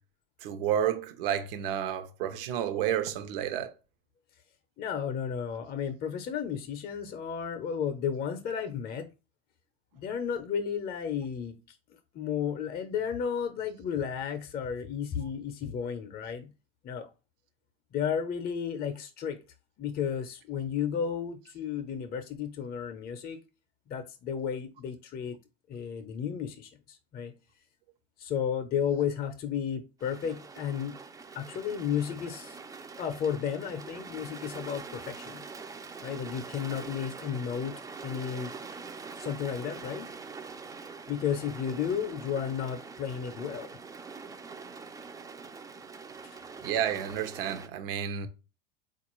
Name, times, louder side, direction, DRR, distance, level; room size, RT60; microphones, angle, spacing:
voice 1, 0.4-3.7 46.6-48.3, right 10 dB, 70° right, 0.8 m, -30 dB
voice 2, 4.8-9.1 9.9-11.8 12.1-16.5 16.8-17.1 17.9-19.4 19.8-23.4 23.9-25.4 25.7-27.3 28.2-31.0 31.3-32.6 33.0-35.4 36.0-38.5 39.2-40.1 41.1-43.7 46.2-46.4, left 8 dB, 30° left, 0.6 m, -33 dB
sound 1, 30.0-47.7, right 5 dB, 10° right, 0.4 m, -44 dB
4.0 x 2.4 x 3.0 m
hypercardioid pair, 100°, 29 cm